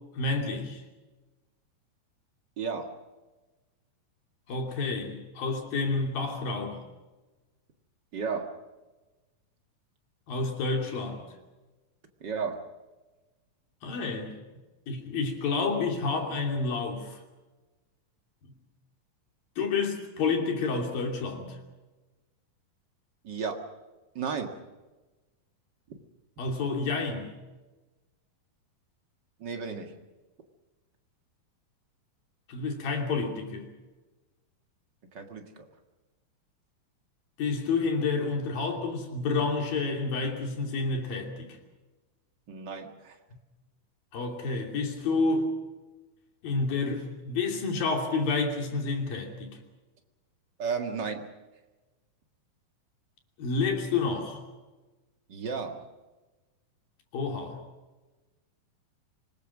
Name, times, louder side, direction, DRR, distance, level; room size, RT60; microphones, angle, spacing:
voice 1, 0.1-0.8 4.5-6.8 10.3-11.3 13.8-14.4 14.9-17.2 19.6-21.6 26.4-27.3 32.5-33.7 37.4-41.5 44.1-45.5 46.4-49.6 53.4-54.4 57.1-57.6, left 4 dB, 75° left, 3 dB, 4.6 m, -29 dB
voice 2, 2.6-2.9 8.1-8.6 12.2-12.7 23.2-23.6 24.2-24.5 29.4-29.9 35.1-35.7 42.5-43.2 50.6-51.3 55.3-55.8, right 5 dB, 40° right, 4 dB, 1.8 m, -33 dB
26.0 x 20.5 x 6.2 m, 1.2 s
omnidirectional pair, 4.1 m